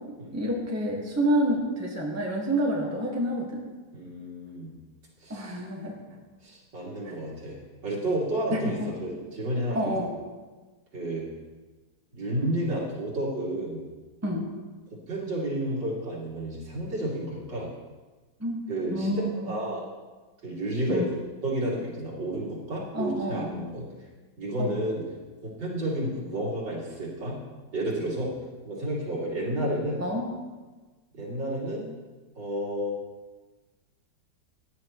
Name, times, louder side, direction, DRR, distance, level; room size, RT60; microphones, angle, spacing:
voice 1, 0.3-3.6 5.3-6.0 7.0-7.1 8.5-8.9 9.7-10.1 14.2-14.5 18.4-18.6 18.9-19.5 20.9-21.0 22.9-23.6 24.6-24.7 30.0-30.3, equal, 10° right, -2 dB, 1.6 m, -28 dB
voice 2, 3.9-4.7 5.2-5.6 6.1-6.2 6.4-9.9 10.9-11.3 12.1-13.8 15.1-17.7 18.7-19.8 20.4-21.0 21.4-23.9 24.4-25.0 25.4-27.4 27.7-28.3 28.6-30.1 31.1-31.9 32.4-32.9, right 1 dB, 80° right, -6 dB, 3.6 m, -31 dB
16.0 x 9.9 x 3.1 m, 1.3 s
omnidirectional pair, 1.9 m